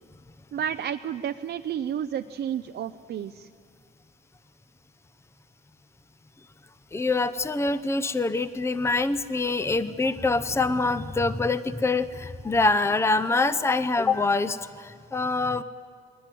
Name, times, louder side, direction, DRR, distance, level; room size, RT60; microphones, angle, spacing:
voice 1, 0.5-3.5, right 9 dB, 60° right, 7 dB, 0.6 m, -31 dB
voice 2, 6.9-15.6, left 3 dB, 15° left, 13 dB, 0.7 m, -25 dB
22.0 x 19.0 x 9.2 m, 2.1 s
cardioid pair, 90°, 20 cm